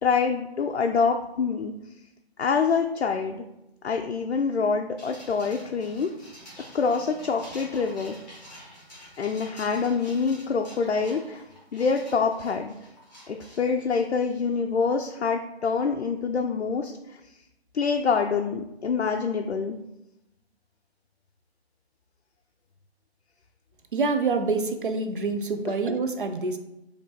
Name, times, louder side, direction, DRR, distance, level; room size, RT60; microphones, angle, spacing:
voice 1, 0.0-1.7 2.4-3.4 3.8-6.3 6.7-8.1 9.2-11.4 11.7-12.7 13.3-17.2 17.7-19.8 25.7-25.8, left 5 dB, 80° left, 3 dB, 0.5 m, -26 dB
sound 1, 5.0-14.5, equal, ahead, 0.9 m, -48 dB
voice 2, 23.9-26.6, right 4 dB, 50° right, 7 dB, 0.6 m, -26 dB
4.3 x 2.7 x 4.1 m, 0.90 s
figure-of-eight pair, 150°, 33 cm